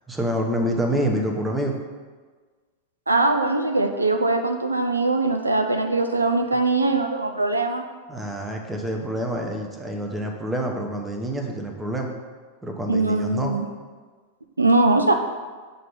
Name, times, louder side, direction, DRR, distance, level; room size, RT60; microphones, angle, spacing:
voice 1, 0.1-1.7 8.1-12.1 12.6-13.6, right 1 dB, 10° right, 2 dB, 0.7 m, -27 dB
voice 2, 3.1-7.8 12.9-13.7 14.6-15.1, right 2 dB, 80° right, 6 dB, 0.3 m, -21 dB
6.5 x 2.8 x 5.3 m, 1.4 s
figure-of-eight pair, 90°, 0 cm